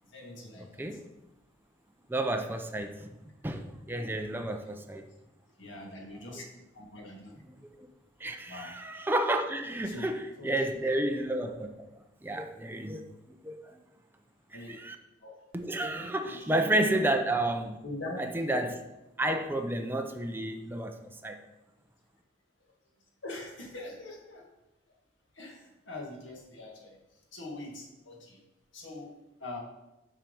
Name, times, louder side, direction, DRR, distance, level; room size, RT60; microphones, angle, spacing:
voice 1, 0.1-0.8 5.6-6.5 6.7-7.4 8.5-8.7 9.8-10.1 10.4-10.6 10.9-11.0 14.5-14.8 15.2-15.4 16.2-16.5 16.8-17.1 17.8-18.2 23.2-24.4 25.4-27.0 27.3-28.4 28.7-29.6, left 2 dB, 80° left, 1.9 m, -43 dB
voice 2, 2.1-3.1 3.4-5.1 7.6-7.8 8.2-11.7 12.2-13.1 13.4-13.8 14.7-15.0 15.5-17.7 18.2-18.8 19.2-21.4, right 1 dB, 10° right, 0.5 m, -31 dB
7.4 x 4.6 x 5.4 m
head